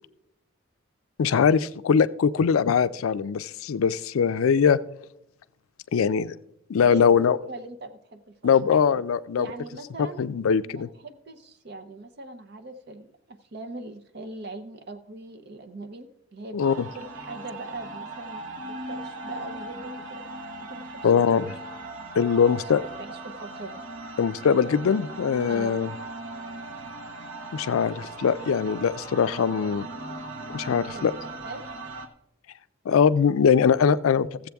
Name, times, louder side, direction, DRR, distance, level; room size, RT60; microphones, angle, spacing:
voice 1, 1.2-4.8 5.9-6.3 6.7-7.4 8.4-9.5 10.2-10.9 16.5-16.9 21.0-21.4 22.2-22.8 24.2-25.9 27.5-29.9 30.5-31.1 32.9-34.4, left 6 dB, 85° left, 15 dB, 0.4 m, -21 dB
voice 2, 6.8-8.4 8.6-8.7 9.4-10.2 10.7-16.6 16.9-20.2 20.6-21.6 22.3-22.7 23.0-23.8 25.5-25.8 30.9-31.0 31.4-31.6, right 2 dB, 50° right, 8 dB, 0.6 m, -41 dB
sound 1, 16.6-32.1, right 2 dB, 65° right, 1.0 m, -39 dB
15.0 x 7.6 x 3.4 m, 0.79 s
head